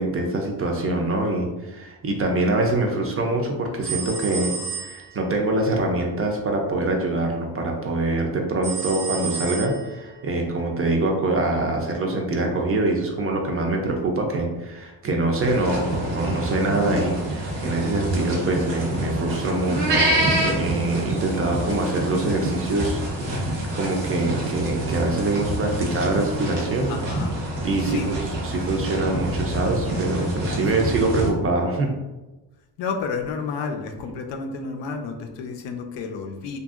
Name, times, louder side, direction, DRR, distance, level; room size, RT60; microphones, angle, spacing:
voice 1, 0.0-4.5 4.8-27.0 27.6-28.2 28.4-31.9, right 2 dB, 35° right, 2 dB, 0.4 m, -24 dB
sound 1, 3.3-3.7 4.0-4.4 5.2-5.6 5.8-6.2 6.5-6.9 7.7-8.1 8.3-8.7 9.0-9.4 10.2-10.6 10.8-11.2 11.5-11.9 12.7-13.1 13.3-13.7 14.0-14.4 15.2-15.6 15.8-16.2 16.5-16.9, right 4 dB, 25° left, 0.6 m, -44 dB
sound 2, 3.8-5.3 8.6-10.1, right 6 dB, 65° right, 0.7 m, -32 dB
sound 3, 15.4-31.3, right 1 dB, 90° right, 0.9 m, -27 dB
voice 2, 26.9-27.3 27.8-28.1 30.7-31.0 32.8-36.6, left 5 dB, 85° left, 4 dB, 0.5 m, -31 dB
2.8 x 2.6 x 2.4 m, 1.1 s
cardioid pair, 130°, 42 cm